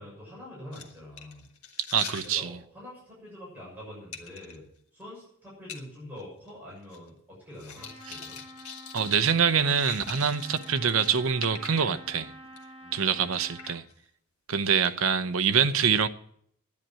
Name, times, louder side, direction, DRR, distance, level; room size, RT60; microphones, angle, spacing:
voice 1, 0.0-1.4 2.2-4.6 4.9-8.4 12.8-13.4, left 1 dB, 10° right, 6.8 m, -45 dB
sound 1, 0.7-2.3 4.1-4.6 5.0-5.1 5.7-5.9 6.2-6.3 6.5-7.1 7.6-12.0 12.4-12.6 13.0-13.2 13.6-13.9 14.8-14.9, left 7 dB, 85° left, 1.6 m, -43 dB
voice 2, 1.9-2.6 8.1-8.2 8.9-12.3 12.9-13.8 14.5-16.1, right 7 dB, 70° right, 0.7 m, -25 dB
Trumpet, 7.7-13.8, equal, 25° right, 6.5 m, -48 dB
10.5 x 10.0 x 7.5 m
head